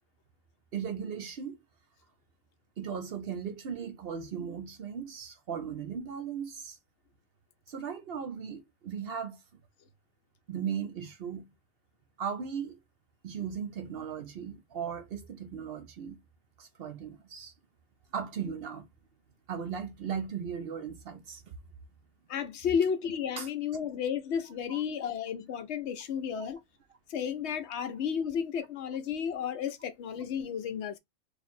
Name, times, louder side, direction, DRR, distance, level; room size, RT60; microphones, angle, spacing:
voice 1, 0.7-1.6 2.8-6.8 7.7-9.4 10.5-11.5 12.2-12.8 13.2-16.2 16.6-17.5 18.1-18.9 19.5-21.5 23.4-23.5 24.7-24.8, right 7 dB, 60° right, 0.7 m, -37 dB
voice 2, 22.3-26.6 27.1-31.0, left 7 dB, 70° left, 0.8 m, -32 dB
2.8 x 2.5 x 4.2 m
omnidirectional pair, 1.3 m